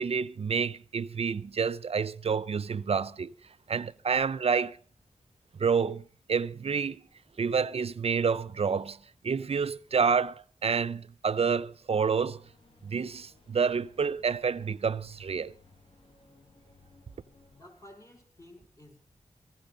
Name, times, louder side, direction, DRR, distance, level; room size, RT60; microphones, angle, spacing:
voice 1, 0.0-3.3 3.7-4.8 5.6-7.0 7.4-9.0 9.2-12.4 12.8-15.5, right 5 dB, 55° right, 0.6 m, -28 dB
sound 1, 12.1-17.6, left 3 dB, 45° left, 7.5 m, -60 dB
voice 2, 17.5-19.0, left 1 dB, 25° left, 5.5 m, -53 dB
18.5 x 15.5 x 4.0 m
wide cardioid pair, 95°, 12 cm